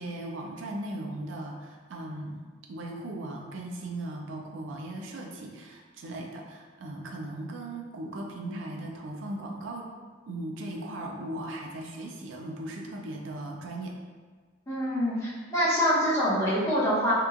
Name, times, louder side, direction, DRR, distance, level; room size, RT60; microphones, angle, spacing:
voice 1, 0.0-2.4 2.7-9.9 10.3-14.0, right 1 dB, 85° right, 0 dB, 0.4 m, -38 dB
voice 2, 14.7-17.1, equal, 15° left, -11 dB, 0.9 m, -25 dB
2.9 x 2.2 x 2.4 m, 1.5 s
head